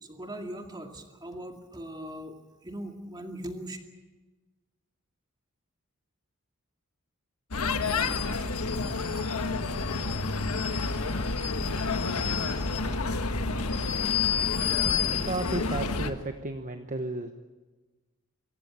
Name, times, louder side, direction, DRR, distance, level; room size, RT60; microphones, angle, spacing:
voice 1, 0.0-2.4 2.6-3.8, right 1 dB, 20° right, 3 dB, 2.3 m, -39 dB
sound 1, 7.5-16.1, left 4 dB, 80° left, 1.5 m, -28 dB
voice 2, 14.5-17.3, right 2 dB, 35° right, 6 dB, 1.0 m, -34 dB
25.0 x 15.0 x 8.9 m, 1.2 s
head